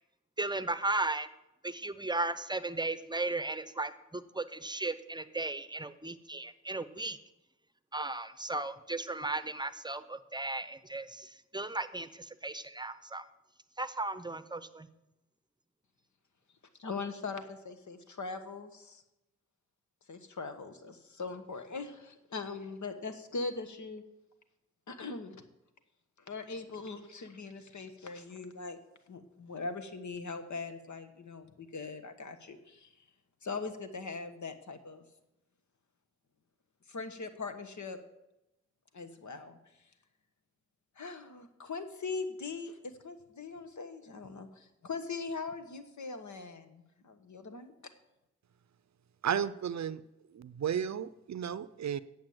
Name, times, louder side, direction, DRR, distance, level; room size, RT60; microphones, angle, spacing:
voice 1, 0.4-1.3 1.6-7.2 7.9-12.1 12.4-13.2 13.8-14.9, right 2 dB, 15° right, 13 dB, 0.7 m, -36 dB
voice 2, 16.8-19.0 20.1-24.0 24.9-25.4 26.3-28.8 29.1-32.9 33.4-35.0 36.9-38.0 38.9-39.6 41.0-47.7, left 4 dB, 75° left, 8 dB, 1.2 m, -41 dB
voice 3, 49.2-50.0 50.3-52.0, right 8 dB, 65° right, 16 dB, 0.5 m, -33 dB
8.9 x 7.2 x 7.8 m, 0.91 s
cardioid pair, 45°, 29 cm